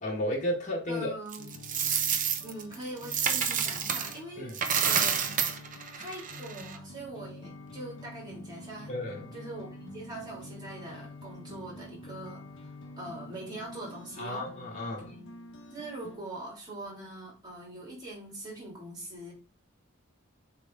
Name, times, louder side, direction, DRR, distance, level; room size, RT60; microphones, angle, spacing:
voice 1, 0.0-1.1 4.4-4.5 8.9-9.3 14.2-15.1, left 1 dB, 35° left, 1.9 m, -33 dB
voice 2, 0.9-1.5 2.4-5.4 6.0-8.9 9.3-14.5 15.1-15.2 15.7-19.3, right 1 dB, 20° right, 3.3 m, -42 dB
Coin (dropping), 1.3-4.2 4.5-6.8, right 7 dB, 40° right, 0.8 m, -29 dB
sound 1, 1.4-16.2, left 2 dB, 60° left, 1.3 m, -47 dB
7.5 x 3.6 x 3.9 m
head